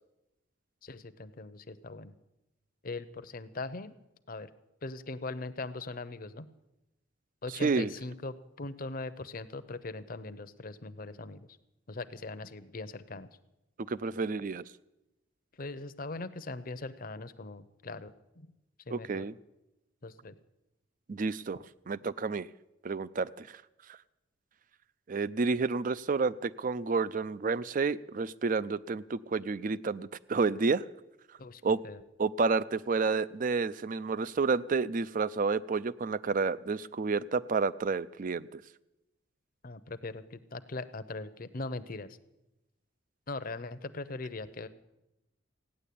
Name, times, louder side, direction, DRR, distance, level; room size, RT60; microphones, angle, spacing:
voice 1, 0.8-2.1 2.8-3.9 4.3-4.5 4.8-6.5 7.4-11.4 11.9-13.3 15.6-18.5 18.9-19.2 20.0-20.3 31.4-32.0 39.6-42.1 43.3-44.7, left 3 dB, 45° left, 12 dB, 0.8 m, -40 dB
voice 2, 7.6-7.9 13.9-14.6 18.9-19.3 21.1-22.5 22.8-23.6 25.1-30.8 31.6-31.8 32.2-38.6, right 4 dB, 45° right, 18 dB, 0.4 m, -30 dB
16.5 x 9.9 x 8.5 m, 0.93 s
head